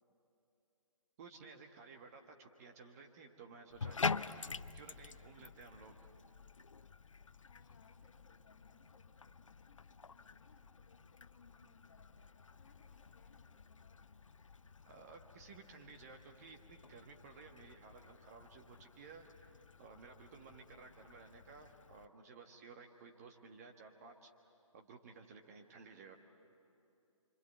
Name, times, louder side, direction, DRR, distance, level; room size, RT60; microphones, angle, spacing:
voice 1, 1.2-4.2 4.7-6.1 14.9-19.5 19.8-24.3 24.7-26.2, right 4 dB, 30° right, 4 dB, 1.5 m, -56 dB
Bathtub (filling or washing), 3.7-22.1, left 5 dB, 65° left, 0.6 m, -47 dB
voice 2, 7.4-14.1, left 6 dB, 35° left, 3 dB, 2.1 m, -69 dB
25.5 x 25.5 x 8.2 m, 2.7 s
figure-of-eight pair, 135°, 17 cm